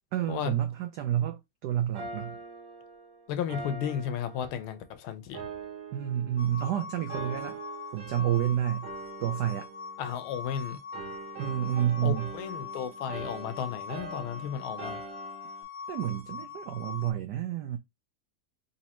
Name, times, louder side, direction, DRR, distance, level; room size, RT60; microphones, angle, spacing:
voice 1, 0.1-2.4 5.9-7.6 7.9-8.9 9.2-9.7 11.4-12.3 15.9-17.8, right 11 dB, 90° right, 0.9 m, -29 dB
sound 1, 1.9-4.9 5.3-6.7 7.1-8.5 8.8-10.5 10.9-15.6, right 4 dB, 65° right, 1.5 m, -43 dB
voice 2, 3.3-5.4 10.0-10.8 12.0-15.0, left 8 dB, 80° left, 1.4 m, -34 dB
sound 2, 6.4-17.1, left 6 dB, 60° left, 1.1 m, -42 dB
4.1 x 2.7 x 2.8 m
omnidirectional pair, 2.4 m